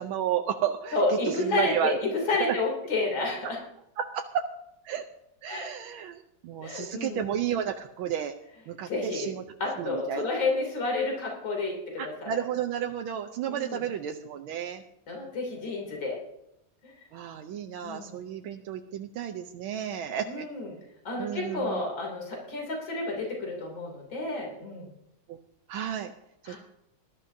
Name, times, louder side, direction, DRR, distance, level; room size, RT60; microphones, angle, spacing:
voice 1, 0.0-2.0 2.4-2.5 4.0-4.5 4.8-5.0 5.4-8.3 8.7-9.4 9.8-10.3 12.0-14.8 17.1-20.5 21.2-21.8 25.3-25.4 25.7-26.1 26.4-26.6, right 9 dB, 85° right, 4 dB, 1.6 m, -32 dB
voice 2, 0.9-3.6 5.5-5.7 6.6-7.2 8.9-9.3 9.6-12.4 13.5-13.8 15.1-16.2 17.8-18.1 20.3-20.7 21.1-24.9 26.5-26.6, left 3 dB, 70° left, 0 dB, 3.8 m, -30 dB
19.5 x 12.5 x 2.7 m, 0.81 s
omnidirectional pair, 2.2 m